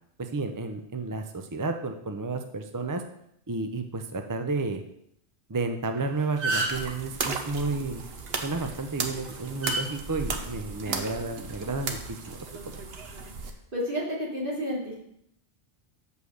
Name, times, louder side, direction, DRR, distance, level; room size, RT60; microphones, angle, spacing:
voice 1, 0.2-3.0 3.5-4.8 5.5-8.0 8.4-12.8, right 3 dB, 30° right, 6 dB, 0.4 m, -32 dB
sound 1, 6.0-6.1 6.2-6.9 8.5-8.8 9.6-9.8 10.8-11.1, right 2 dB, 85° right, 2.4 m, -28 dB
sound 2, 6.7-13.5, right 4 dB, 65° right, 1.1 m, -35 dB
voice 2, 13.7-14.9, equal, 50° right, -6 dB, 3.0 m, -30 dB
6.4 x 5.5 x 6.5 m, 0.75 s
omnidirectional pair, 1.1 m